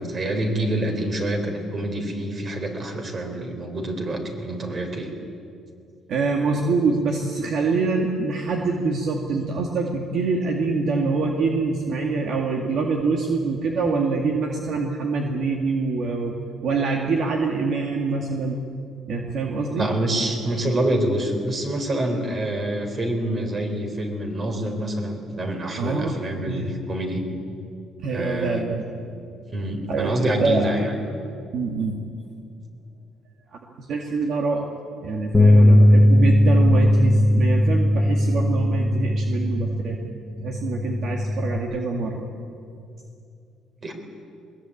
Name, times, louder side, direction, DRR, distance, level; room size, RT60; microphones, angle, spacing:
voice 1, 0.0-5.1 19.7-27.2 28.1-28.6 29.2-30.9 43.8-43.9, right 1 dB, 35° right, 5 dB, 4.2 m, -26 dB
voice 2, 6.1-16.4 16.6-18.6 19.1-19.9 25.8-26.7 28.0-28.9 29.9-30.7 31.5-32.1 33.5-34.7 35.0-42.3, right 4 dB, 55° right, 1 dB, 2.2 m, -25 dB
Bass guitar, 35.3-41.6, left 1 dB, 10° left, 1.6 m, -18 dB
21.5 x 21.0 x 8.6 m, 2.5 s
cardioid pair, 115°, 0 cm